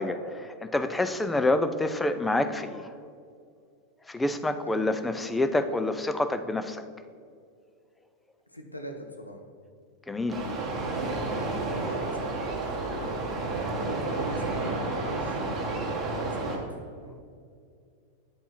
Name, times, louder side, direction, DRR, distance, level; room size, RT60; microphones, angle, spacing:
voice 1, 0.0-2.9 4.1-6.8 10.1-10.4, left 2 dB, 10° left, 10 dB, 0.5 m, -27 dB
voice 2, 8.5-9.4 11.3-15.4 16.1-16.6 17.0-17.2, equal, 85° left, 3 dB, 1.0 m, -42 dB
sound 1, 10.3-16.6, right 3 dB, 20° right, 1.8 m, -31 dB
8.8 x 5.3 x 4.6 m, 2.3 s
figure-of-eight pair, 90°, 0 cm